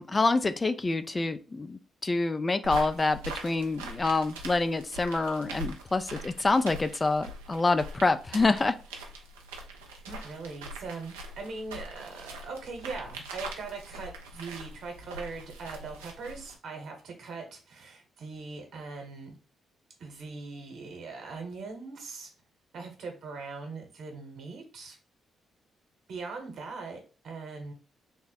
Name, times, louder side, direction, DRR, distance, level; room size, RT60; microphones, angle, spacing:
voice 1, 0.0-8.7, left 3 dB, 30° left, 11 dB, 0.3 m, -27 dB
sound 1, 2.6-16.6, right 2 dB, 85° right, 0.4 m, -42 dB
voice 2, 10.1-19.3 20.0-22.3 22.7-25.0 26.1-27.0 27.2-27.7, right 4 dB, 65° right, 3 dB, 1.0 m, -41 dB
3.5 x 2.0 x 4.1 m, 0.36 s
hypercardioid pair, 45°, 0 cm